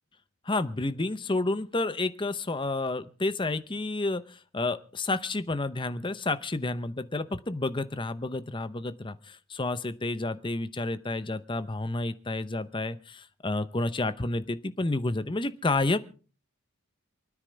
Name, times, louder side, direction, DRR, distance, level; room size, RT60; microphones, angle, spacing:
voice 1, 0.5-16.0, left 2 dB, 25° left, 13 dB, 0.7 m, -30 dB
28.0 x 9.7 x 3.4 m, 0.38 s
head